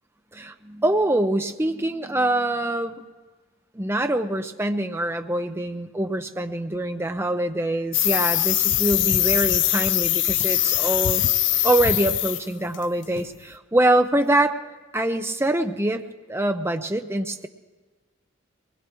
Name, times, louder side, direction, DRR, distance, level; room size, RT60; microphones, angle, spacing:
voice 1, 0.3-3.0 3.7-11.2 11.6-14.6 14.9-17.5, right 1 dB, 10° right, 6 dB, 0.6 m, -24 dB
sound 1, 7.3-7.4 7.7-7.8 8.6-10.6 11.9-12.2 13.1-13.4 13.7-14.1 14.3-14.5, left 1 dB, 40° left, 1.0 m, -47 dB
sound 2, 7.9-12.5 12.7-13.0, left 14 dB, 60° left, 0.4 m, -22 dB
23.0 x 20.0 x 3.1 m, 1.3 s
head